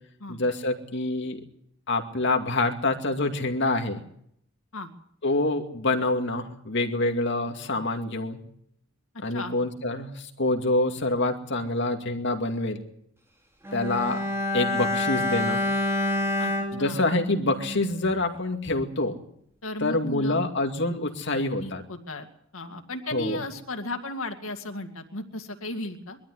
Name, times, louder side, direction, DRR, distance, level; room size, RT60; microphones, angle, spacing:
voice 1, 0.3-1.4 1.9-4.0 5.2-8.4 9.2-12.8 13.7-14.2 14.5-15.6 16.7-19.1 19.8-21.8 23.1-23.4, left 2 dB, 60° left, 4 dB, 2.4 m, -26 dB
Bowed string instrument, 13.6-18.1 18.3-18.5, left 2 dB, 15° right, 3.5 m, -28 dB
voice 2, 16.8-17.2 19.6-20.4 21.6-22.3 22.5-26.2, left 2 dB, 90° left, 5 dB, 2.2 m, -35 dB
22.5 x 13.0 x 9.5 m, 0.72 s
head